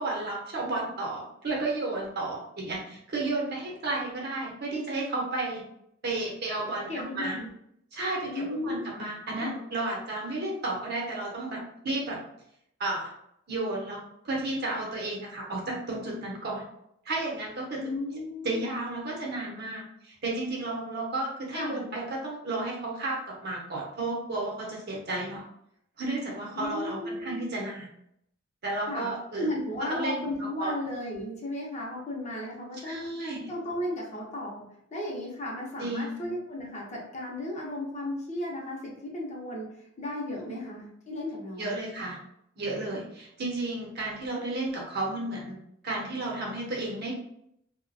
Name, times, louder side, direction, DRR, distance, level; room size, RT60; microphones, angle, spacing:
voice 1, 0.0-5.6 6.0-7.4 7.9-12.2 12.8-13.1 13.5-16.6 17.0-17.8 18.4-25.4 26.0-27.9 28.6-29.5 29.8-30.8 32.8-33.5 35.8-36.2 40.3-40.6 41.6-42.2 42.6-45.6 45.8-47.1, right 2 dB, 55° right, -3 dB, 0.8 m, -33 dB
voice 2, 6.9-7.5 8.2-8.8 9.4-9.6 17.8-18.7 21.5-21.8 26.5-27.5 28.9-29.1 29.4-33.0 33.5-39.7 40.0-41.8, left 1 dB, 35° left, -2 dB, 0.6 m, -35 dB
2.3 x 2.1 x 2.5 m, 0.74 s
head